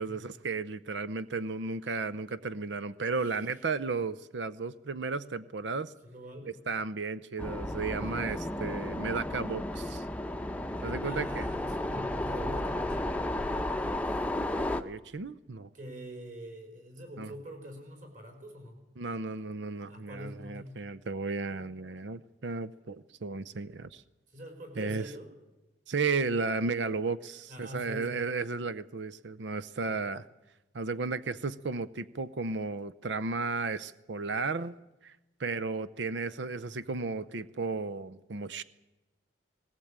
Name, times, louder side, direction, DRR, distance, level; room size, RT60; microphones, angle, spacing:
voice 1, 0.0-5.9 6.7-10.0 10.8-11.5 14.3-15.7 17.2-17.3 19.0-24.0 24.8-25.1 25.9-30.3 30.7-34.7 35.0-38.6, right 4 dB, 70° right, 16 dB, 0.7 m, -34 dB
voice 2, 6.0-6.5 8.0-8.3 11.0-13.2 15.7-18.8 19.9-20.8 24.3-25.3 27.5-28.2 29.9-30.0 36.5-36.9, equal, 45° right, 4 dB, 5.2 m, -44 dB
sound 1, 7.4-14.8, left 1 dB, 5° left, 0.7 m, -33 dB
19.5 x 18.5 x 8.8 m, 1.0 s
head